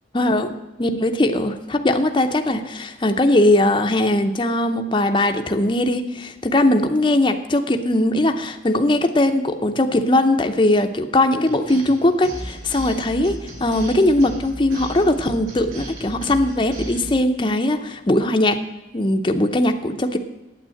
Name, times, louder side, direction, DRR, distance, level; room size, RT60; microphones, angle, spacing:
voice 1, 0.1-0.5 0.8-18.6 18.9-20.2, left 1 dB, 25° left, 6 dB, 0.6 m, -20 dB
sound 1, 11.5-17.2, right 1 dB, 50° right, 3.0 m, -35 dB
9.0 x 8.7 x 7.6 m, 1.1 s
head